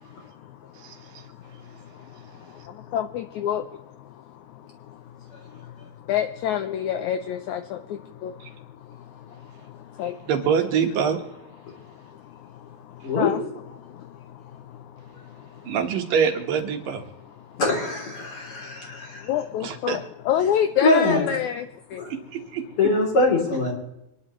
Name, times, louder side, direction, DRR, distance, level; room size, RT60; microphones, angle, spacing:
voice 1, 0.0-10.3 11.6-13.4 13.8-15.7 17.4-17.6 18.2-22.0, left 9 dB, 80° left, 9 dB, 1.7 m, -31 dB
voice 2, 0.8-1.2 8.4-8.5 10.3-11.2 15.6-17.0 19.6-20.0 22.1-22.6, right 7 dB, 75° right, 4 dB, 3.1 m, -25 dB
voice 3, 17.6-19.3 20.8-21.2 22.0-22.1 22.8-23.7, left 3 dB, 40° left, -1 dB, 3.8 m, -22 dB
25.5 x 11.0 x 3.1 m, 0.86 s
omnidirectional pair, 4.0 m